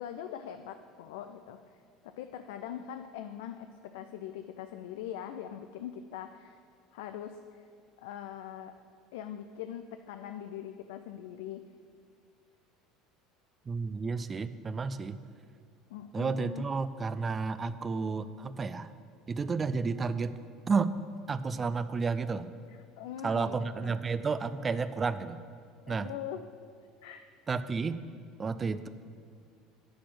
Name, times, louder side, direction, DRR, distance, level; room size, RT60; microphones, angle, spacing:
voice 1, 0.0-6.6 6.9-7.7 8.0-8.7 9.1-11.6 15.9-16.6 22.7-24.0 25.9-26.5 27.0-27.3, left 10 dB, 65° left, 8 dB, 0.3 m, -42 dB
voice 2, 13.7-15.2 16.1-18.9 19.3-20.3 20.7-20.9 21.3-22.5 23.2-25.4 25.9-26.1 27.5-28.0 28.4-28.9, right 4 dB, 25° right, 13 dB, 0.4 m, -31 dB
10.0 x 4.3 x 7.7 m, 2.2 s
figure-of-eight pair, 65°, 0 cm